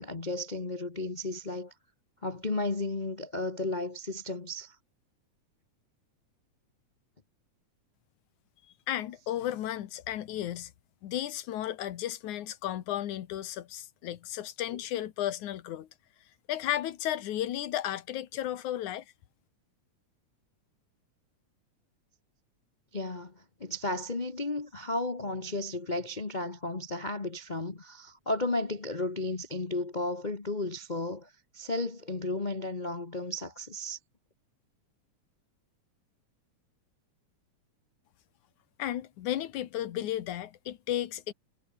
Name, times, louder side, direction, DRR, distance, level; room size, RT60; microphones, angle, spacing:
voice 1, 0.0-1.7 2.2-4.8 14.7-14.8 22.9-34.0, left 2 dB, 45° left, 0.5 m, -34 dB
voice 2, 8.9-10.7 11.0-15.9 16.5-19.1 38.8-41.3, left 12 dB, 80° left, 2.8 m, -34 dB
omnidirectional pair, 3.4 m